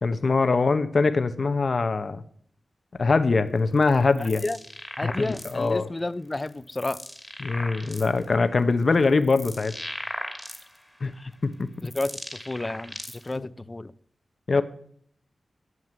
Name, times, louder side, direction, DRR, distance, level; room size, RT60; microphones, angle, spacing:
voice 1, 0.0-2.2 3.0-4.4 5.0-5.9 7.4-9.7 11.0-11.1 11.6-11.7 13.4-13.5 14.5-14.6, left 4 dB, 50° left, 10 dB, 1.1 m, -23 dB
sound 1, 3.8-5.8 6.3-8.2 8.8-11.0 11.5-13.4, equal, ahead, 2.5 m, -38 dB
voice 2, 4.2-4.6 5.0-7.0 11.2-11.3 11.8-12.2 12.5-13.9, left 2 dB, 25° left, 16 dB, 0.6 m, -31 dB
11.0 x 7.9 x 8.9 m, 0.62 s
wide cardioid pair, 110°, 0 cm